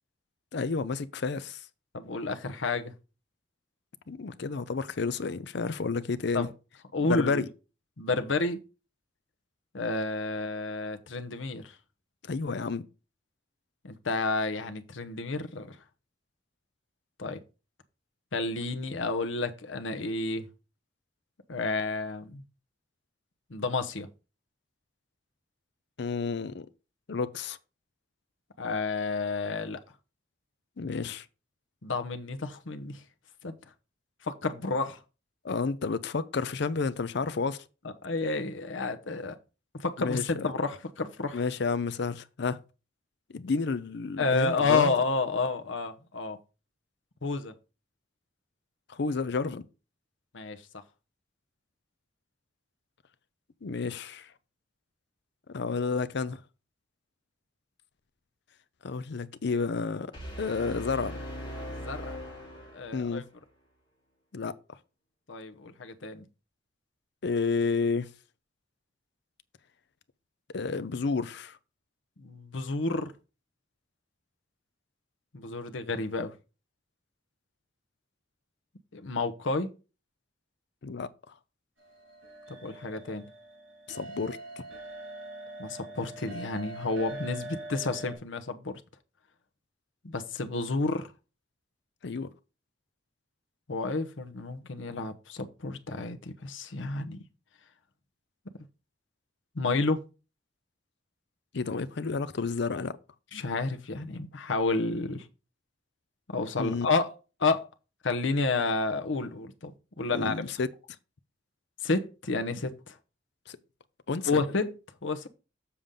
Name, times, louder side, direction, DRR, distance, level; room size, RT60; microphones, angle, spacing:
voice 1, 0.5-1.7 4.1-6.5 7.0-7.5 12.2-12.8 26.0-26.7 27.1-27.6 30.8-31.3 35.4-37.6 40.0-40.5 41.3-42.6 43.3-44.9 48.9-49.6 53.6-54.3 55.5-56.4 58.8-60.1 60.4-61.2 62.9-63.2 64.3-64.5 67.2-68.1 70.5-71.6 80.8-81.1 83.9-84.4 92.0-92.3 101.5-103.0 106.6-106.9 110.1-110.7 113.5-113.6 114.1-114.4, left 4 dB, 60° left, 0.6 m, -31 dB
voice 2, 1.9-2.9 6.3-6.5 6.9-7.4 8.0-8.6 9.7-11.8 13.8-15.8 17.2-17.4 18.3-20.5 21.5-22.4 23.5-24.1 28.6-29.8 31.8-33.0 33.4-33.6 34.2-35.0 38.0-39.3 39.8-41.4 44.2-46.4 47.2-47.5 50.3-50.6 61.8-62.2 62.7-63.2 65.3-66.2 72.2-73.1 75.3-76.3 78.9-79.7 82.5-83.3 85.6-88.8 90.0-91.1 93.7-97.2 99.5-100.0 103.3-105.2 106.3-107.1 107.4-107.7 108.0-109.7 110.0-110.4 111.8-112.9 114.3-114.8 115.0-115.3, left 3 dB, 75° left, 0.9 m, -30 dB
sound 1, 60.1-63.2, equal, 25° left, 3.5 m, -40 dB
sound 2, 81.8-88.2, right 2 dB, 85° right, 4.5 m, -43 dB
7.1 x 6.7 x 3.7 m
head